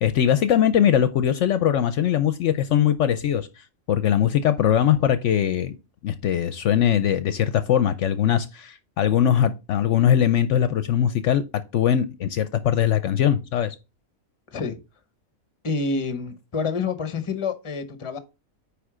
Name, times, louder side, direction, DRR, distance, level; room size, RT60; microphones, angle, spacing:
voice 1, 0.0-3.5 3.9-5.8 6.0-11.4 11.7-13.7, left 9 dB, 65° left, 0.8 m, -21 dB
voice 2, 14.5-14.8 15.6-18.2, left 4 dB, 25° left, 0.8 m, -28 dB
9.5 x 3.4 x 4.9 m
omnidirectional pair, 1.4 m